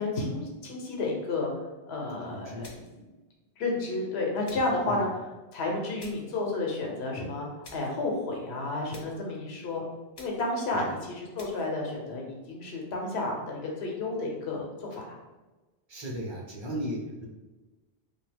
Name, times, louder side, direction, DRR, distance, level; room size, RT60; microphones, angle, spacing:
voice 1, 0.0-1.5 1.9-2.7 2.9-3.1 3.6-5.1 5.5-7.5 7.7-9.8 10.2-15.2, left 2 dB, 85° left, -1 dB, 0.9 m, -31 dB
voice 2, 2.3-2.7 4.9-5.0 10.7-10.9 15.9-17.3, equal, 35° right, -2 dB, 0.6 m, -36 dB
sound 1, 2.6-3.1 4.4-4.8 6.0-6.4 7.6-8.0 8.9-9.3 10.1-10.6 11.4-11.7, left 2 dB, 35° left, 0.4 m, -51 dB
2.7 x 2.3 x 3.4 m, 1.2 s
omnidirectional pair, 1.0 m